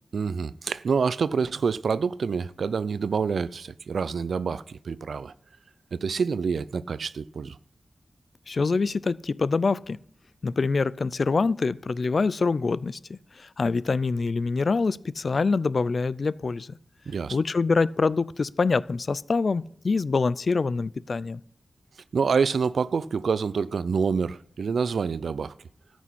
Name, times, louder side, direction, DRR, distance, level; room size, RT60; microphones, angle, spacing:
voice 1, 0.1-5.3 5.9-7.6 17.1-17.4 22.1-25.5, right 5 dB, 85° right, 0.4 m, -27 dB
voice 2, 8.5-10.0 10.4-13.2 13.6-16.7 17.3-21.4, left 4 dB, 55° left, 0.4 m, -25 dB
13.5 x 6.1 x 8.5 m
wide cardioid pair, 95°, 0 cm